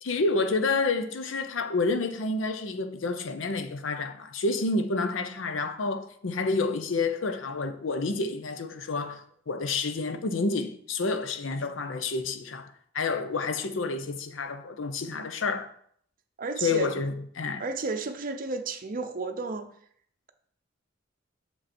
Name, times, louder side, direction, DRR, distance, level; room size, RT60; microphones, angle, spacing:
voice 1, 0.0-15.7 16.6-17.6, left 3 dB, 75° left, 0.7 m, -29 dB
voice 2, 16.4-16.9 17.6-19.7, right 3 dB, 45° right, 0.7 m, -32 dB
6.9 x 5.3 x 4.3 m
head